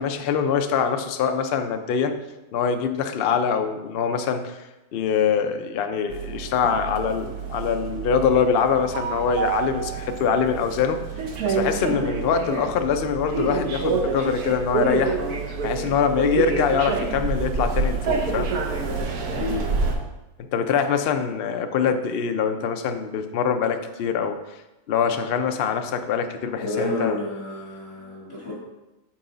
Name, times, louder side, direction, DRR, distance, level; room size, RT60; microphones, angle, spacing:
voice 1, 0.0-2.1 2.5-4.6 4.9-11.0 11.5-15.2 15.6-18.5 20.4-24.4 24.9-27.2, left 6 dB, 70° left, 7 dB, 0.5 m, -24 dB
sound 1, 6.1-20.0, right 4 dB, 75° right, 1.4 m, -27 dB
voice 2, 26.6-28.5, left 2 dB, 40° left, -7 dB, 2.1 m, -29 dB
7.5 x 4.8 x 3.9 m, 1.0 s
omnidirectional pair, 1.6 m